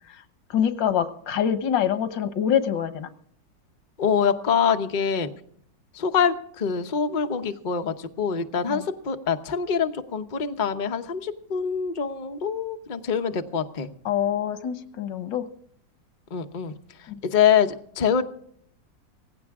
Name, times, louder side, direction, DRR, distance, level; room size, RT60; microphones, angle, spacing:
voice 1, 0.5-3.1 8.7-8.9 14.1-15.5 17.1-17.2, left 9 dB, 90° left, 10 dB, 1.8 m, -25 dB
voice 2, 4.0-5.3 5.9-13.9 16.3-16.7 17.0-18.2, left 7 dB, 35° left, 6 dB, 0.9 m, -25 dB
18.0 x 16.5 x 3.6 m, 0.63 s
omnidirectional pair, 1.9 m